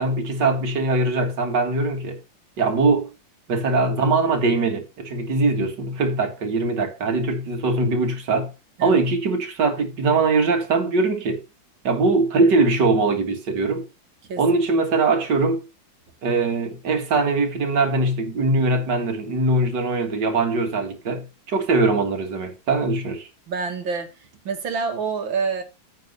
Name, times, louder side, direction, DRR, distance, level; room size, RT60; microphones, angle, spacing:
voice 1, 0.0-2.2 2.6-3.1 3.5-8.5 8.8-11.4 11.8-13.9 14.4-15.6 16.2-23.3, right 3 dB, 60° right, 2.4 m, -21 dB
voice 2, 23.5-24.1 24.4-25.6, right 5 dB, 80° right, 2.4 m, -27 dB
9.5 x 4.6 x 6.7 m
omnidirectional pair, 2.1 m